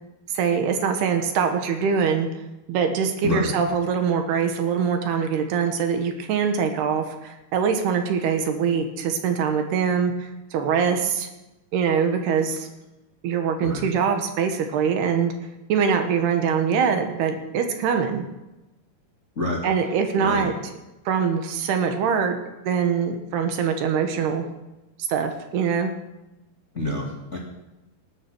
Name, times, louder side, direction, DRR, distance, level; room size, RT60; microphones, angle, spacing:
voice 1, 0.3-2.3 2.7-11.3 11.7-12.7 13.2-15.3 15.7-18.3 19.6-20.6 21.1-22.4 22.7-24.5 25.1-25.9, right 6 dB, 75° right, 6 dB, 3.4 m, -23 dB
voice 2, 13.6-13.9 19.4-19.6 20.2-20.4 26.7-27.4, left 1 dB, 25° left, -1 dB, 1.8 m, -27 dB
19.5 x 9.9 x 6.3 m, 0.99 s
omnidirectional pair, 4.8 m